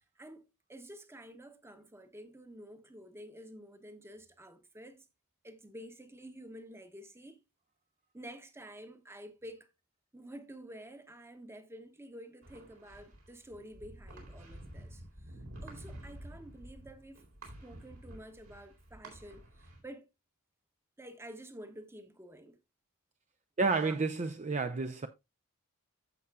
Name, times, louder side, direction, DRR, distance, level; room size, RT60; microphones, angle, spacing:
voice 1, 0.7-5.1 5.4-7.4 8.1-9.7 10.1-15.0 15.6-17.3 17.6-20.0 21.0-22.6 23.8-23.9, right 1 dB, 10° right, 1.0 m, -50 dB
sound 1, 12.4-19.8, right 1 dB, 70° right, 4.0 m, -50 dB
voice 2, 23.6-25.1, right 4 dB, 30° right, 0.5 m, -30 dB
15.0 x 5.7 x 2.3 m
head